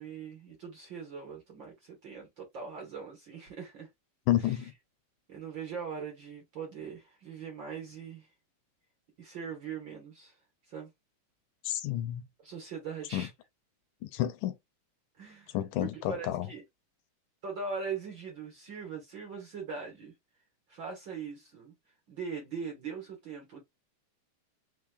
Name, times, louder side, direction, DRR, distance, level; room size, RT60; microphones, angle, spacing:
voice 1, 0.0-3.9 4.4-4.7 5.3-8.3 9.2-10.4 10.7-10.9 12.4-13.3 15.2-16.6 17.4-20.1 20.7-21.7 22.1-23.6, right 5 dB, 50° right, 1.6 m, -41 dB
voice 2, 4.3-4.7 11.6-12.2 13.1-13.3 14.0-14.6 15.5-16.5, left 13 dB, 80° left, 2.1 m, -30 dB
4.7 x 4.0 x 2.3 m
omnidirectional pair, 3.8 m